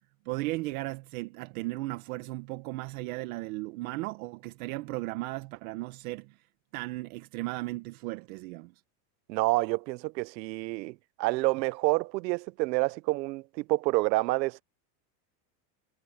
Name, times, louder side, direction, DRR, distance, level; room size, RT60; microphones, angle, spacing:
voice 1, 0.2-6.4 6.7-8.7, right 20 dB, 55° right, 1.1 m, -36 dB
voice 2, 9.3-14.6, right 22 dB, 85° right, 0.9 m, -28 dB
supercardioid pair, 170°, 50 cm